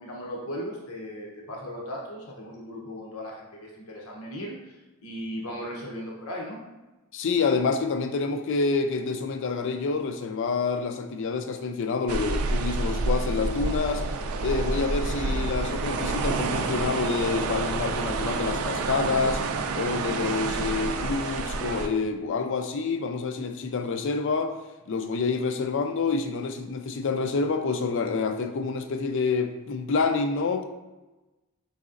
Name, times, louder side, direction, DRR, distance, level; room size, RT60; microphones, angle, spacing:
voice 1, 0.0-6.6, equal, 80° left, -2 dB, 0.8 m, -37 dB
voice 2, 7.1-14.0 14.4-19.4 19.8-24.5 24.9-30.6, left 4 dB, 60° left, 7 dB, 0.4 m, -27 dB
sound 1, 12.1-21.9, right 3 dB, 75° right, 0.4 m, -28 dB
4.7 x 4.0 x 2.5 m, 1.1 s
head